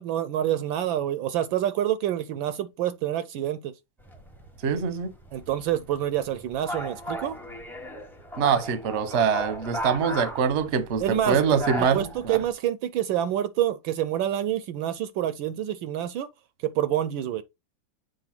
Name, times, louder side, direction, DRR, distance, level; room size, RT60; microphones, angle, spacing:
voice 1, 0.0-3.7 5.3-7.4 11.0-11.4 11.8-16.3 16.6-17.4, right 11 dB, 75° right, 1.2 m, -27 dB
sound 1, 4.0-12.5, right 1 dB, ahead, 0.6 m, -37 dB
voice 2, 4.6-5.1 8.4-12.4, right 7 dB, 50° right, 0.9 m, -24 dB
7.8 x 2.6 x 5.8 m
omnidirectional pair, 2.3 m